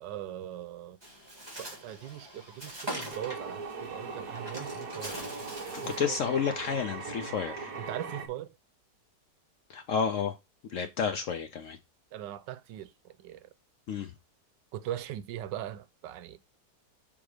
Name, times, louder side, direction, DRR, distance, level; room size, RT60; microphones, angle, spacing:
voice 1, 0.0-1.0 1.6-5.4 5.8-6.2 7.8-8.5 12.1-13.5 14.7-16.4, right 12 dB, 90° right, 1.3 m, -40 dB
Bird, 1.0-6.1, equal, 15° right, 1.8 m, -43 dB
sound 1, 3.1-8.3, right 4 dB, 55° right, 1.4 m, -40 dB
voice 2, 5.7-7.7 9.7-10.4 10.7-11.8 13.9-14.1, left 6 dB, 70° left, 0.7 m, -31 dB
6.0 x 3.6 x 4.8 m
omnidirectional pair, 1.9 m